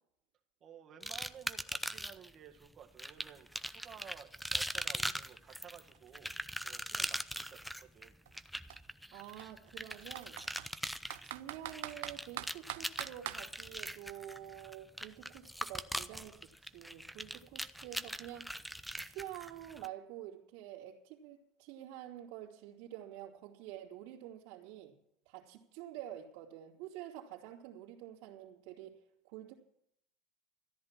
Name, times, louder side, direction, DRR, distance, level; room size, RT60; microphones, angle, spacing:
voice 1, 0.6-6.3 6.6-8.2, right 8 dB, 40° right, 4 dB, 1.8 m, -54 dB
sound 1, 1.0-2.3 3.0-19.9, equal, ahead, 0.6 m, -41 dB
Computer keyboard, 5.1-5.2 5.5-7.5 8.2-8.4 8.7-8.8 9.4-10.7 11.1-13.4, right 15 dB, 90° right, 0.6 m, -43 dB
voice 2, 9.1-10.8 11.2-18.5 19.0-24.9 25.2-29.0 29.2-29.5, right 12 dB, 70° right, -8 dB, 2.8 m, -48 dB
14.0 x 10.5 x 7.5 m, 0.75 s
supercardioid pair, 120°, 0 cm